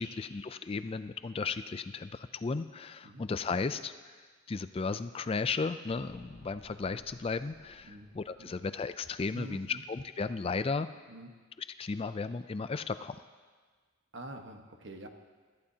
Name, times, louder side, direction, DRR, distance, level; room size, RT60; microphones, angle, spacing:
voice 1, 0.0-4.2 4.5-10.9 11.6-13.2, left 4 dB, 25° left, 11 dB, 0.3 m, -35 dB
sound 1, 5.9-10.1 10.4-10.5, equal, 85° right, 4.4 m, -60 dB
voice 2, 9.3-9.8 11.1-11.3 14.1-15.1, right 1 dB, 55° right, 4 dB, 1.3 m, -45 dB
25.5 x 14.0 x 2.8 m, 1.5 s
head